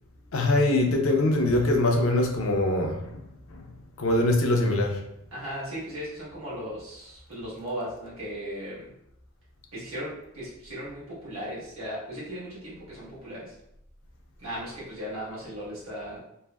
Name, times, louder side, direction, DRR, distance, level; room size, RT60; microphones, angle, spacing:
voice 1, 0.3-3.2 3.5-3.7 4.0-5.0, left 2 dB, 70° left, 2 dB, 0.5 m, -23 dB
voice 2, 5.3-8.9 9.7-13.5 14.4-16.2, equal, 75° right, -8 dB, 1.4 m, -37 dB
3.2 x 2.0 x 2.3 m, 0.80 s
head